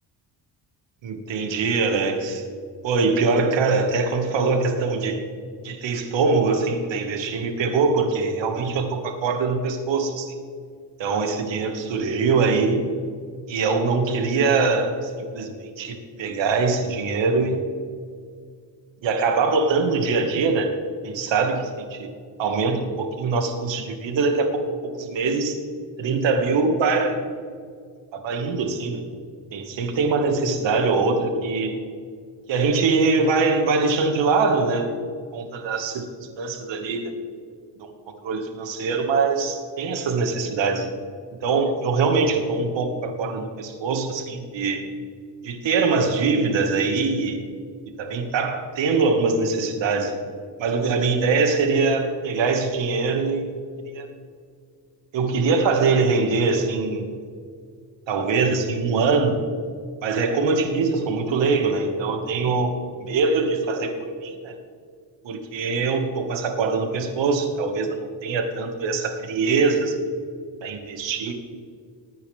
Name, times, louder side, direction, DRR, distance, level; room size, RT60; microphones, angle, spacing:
voice 1, 1.0-2.4 2.8-5.2 5.6-10.3 11.0-12.8 13.5-17.6 19.0-20.7 21.0-22.1 22.4-24.7 25.0-25.6 26.0-27.2 28.1-29.0 29.5-31.8 32.5-34.9 35.3-36.1 36.4-37.1 37.8-37.9 38.2-40.9 41.4-44.9 45.4-47.4 48.0-50.2 50.6-53.5 53.9-54.1 55.1-57.0 58.1-59.4 60.0-62.7 63.0-63.9 64.2-64.6 65.2-70.1 70.6-71.3, right 4 dB, 75° right, 4 dB, 2.2 m, -23 dB
19.5 x 9.4 x 3.6 m, 2.1 s
cardioid pair, 100°, 45 cm